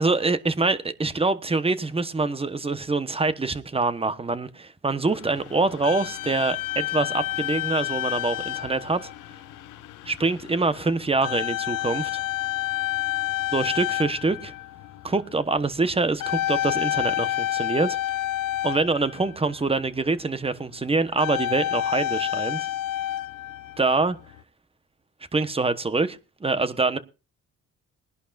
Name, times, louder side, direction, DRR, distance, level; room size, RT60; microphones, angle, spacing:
voice 1, 0.0-9.1 10.0-12.2 13.5-14.5 15.0-18.0 18.6-22.7 23.8-24.2 25.3-27.0, right 3 dB, 20° right, 1.2 m, -25 dB
sound 1, 5.1-19.6 21.1-24.4, left 14 dB, 85° left, 0.9 m, -29 dB
22.0 x 11.0 x 2.6 m
cardioid pair, 90°, 30 cm